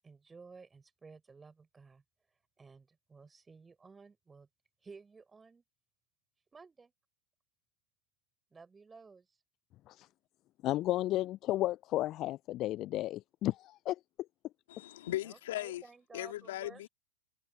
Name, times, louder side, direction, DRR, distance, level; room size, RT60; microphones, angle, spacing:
voice 1, 0.0-2.0 2.6-4.5 4.8-5.6 6.5-6.9 8.5-9.3 15.2-16.8, right 4 dB, 15° right, 6.4 m, -54 dB
voice 2, 10.6-14.0, left 15 dB, 35° left, 0.4 m, -33 dB
voice 3, 14.7-15.8 16.1-16.9, left 15 dB, 60° left, 2.7 m, -38 dB
hypercardioid pair, 100°, 0 cm